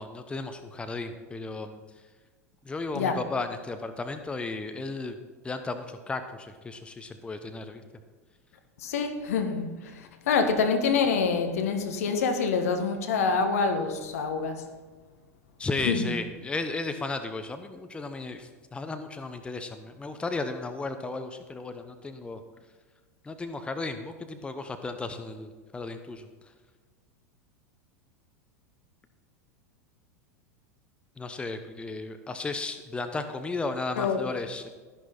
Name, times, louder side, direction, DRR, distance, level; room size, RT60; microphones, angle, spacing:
voice 1, 0.0-1.8 2.6-5.2 5.4-7.8 15.6-22.4 23.2-26.3 31.2-34.7, left 3 dB, 10° left, 0.9 m, -34 dB
voice 2, 8.8-14.6 15.8-16.1 34.0-34.2, left 5 dB, 65° left, 1.4 m, -26 dB
12.5 x 11.0 x 4.3 m
figure-of-eight pair, 85°, 9 cm